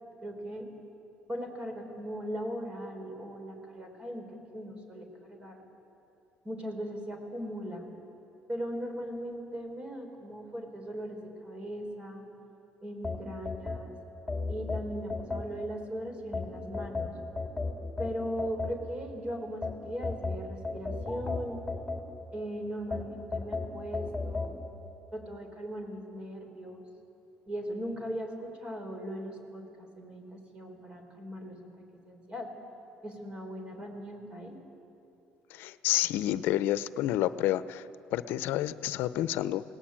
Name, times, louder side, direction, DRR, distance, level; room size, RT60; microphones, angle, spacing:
voice 1, 0.2-0.7 1.3-5.6 6.4-7.9 8.5-12.3 12.8-13.9 14.5-17.1 18.0-21.6 22.3-24.6 25.1-26.8 27.5-31.6 32.1-32.5 33.0-34.6, equal, 30° right, 4 dB, 4.9 m, -39 dB
sound 1, 13.0-15.8 16.3-19.1 19.6-22.4 22.9-24.5, left 3 dB, 10° left, 3.2 m, -35 dB
voice 2, 35.5-39.6, left 13 dB, 80° left, 15 dB, 0.7 m, -29 dB
28.5 x 19.0 x 8.8 m, 2.9 s
cardioid pair, 110°, 4 cm